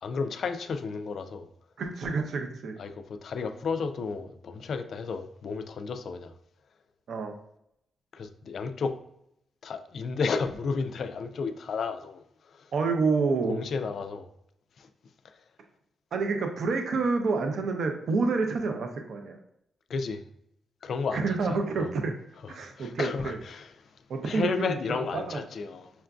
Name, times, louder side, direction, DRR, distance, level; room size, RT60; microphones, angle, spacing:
voice 1, 0.0-1.5 2.8-6.3 8.1-9.0 9.6-12.7 13.5-14.3 14.8-14.9 19.9-20.2 20.8-21.9 22.4-23.7 24.2-25.9, left 5 dB, 50° left, 8 dB, 0.3 m, -33 dB
voice 2, 1.8-2.8 7.1-7.3 12.7-13.6 16.1-19.4 21.1-22.1 22.5-23.4 24.1-25.4, right 4 dB, 55° right, 4 dB, 0.5 m, -28 dB
5.6 x 2.5 x 2.3 m, 0.76 s
wide cardioid pair, 170°, 0 cm